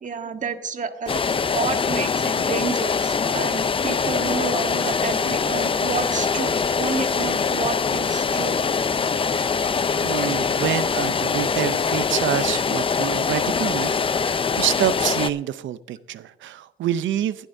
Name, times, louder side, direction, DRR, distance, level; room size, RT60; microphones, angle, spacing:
voice 1, 0.0-1.2 1.5-8.8, right 5 dB, 40° right, 1.4 m, -30 dB
sound 1, 1.1-15.3, left 5 dB, 25° left, 0.5 m, -23 dB
voice 2, 10.0-17.4, right 11 dB, 75° right, 0.7 m, -27 dB
20.5 x 11.5 x 2.7 m
cardioid pair, 90°, 20 cm